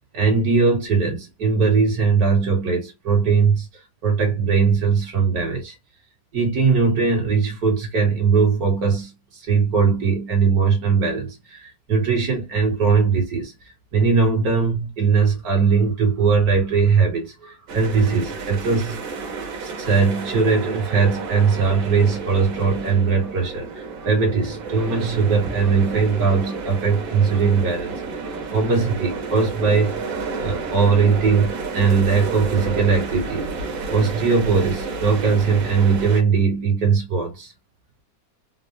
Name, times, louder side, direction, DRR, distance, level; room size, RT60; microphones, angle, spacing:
voice 1, 0.1-3.7 4.0-5.7 6.3-13.5 13.9-19.0 19.6-27.9 28.5-30.0 30.4-33.5 33.9-37.5, right 5 dB, 55° right, 1.8 m, -20 dB
sound 1, 17.7-36.2, right 4 dB, 80° right, 1.8 m, -31 dB
4.2 x 2.1 x 2.7 m
omnidirectional pair, 2.1 m